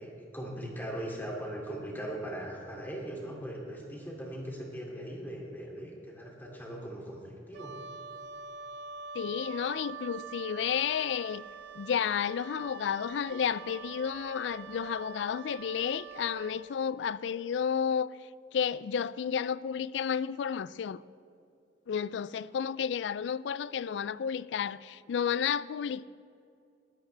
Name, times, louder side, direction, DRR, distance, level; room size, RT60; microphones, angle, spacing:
voice 1, 0.0-7.7, right 1 dB, 10° left, 2.5 m, -39 dB
Wind instrument woodwind instrument, 7.5-16.6, right 6 dB, 75° right, 0.6 m, -45 dB
voice 2, 9.1-11.4 11.8-18.1 18.5-21.0 21.9-26.1, left 7 dB, 70° left, 0.3 m, -31 dB
19.5 x 13.5 x 3.3 m
head